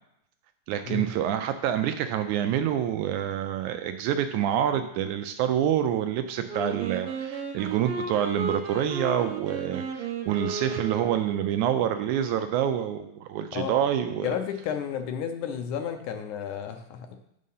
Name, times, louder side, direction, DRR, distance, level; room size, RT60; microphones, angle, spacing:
voice 1, 0.7-14.3, right 10 dB, 80° right, 8 dB, 1.8 m, -27 dB
Wind instrument woodwind instrument, 6.5-11.7, right 4 dB, 65° right, 1.4 m, -34 dB
voice 2, 14.2-17.2, left 8 dB, 75° left, 6 dB, 2.1 m, -32 dB
6.5 x 6.4 x 5.5 m, 0.79 s
omnidirectional pair, 3.7 m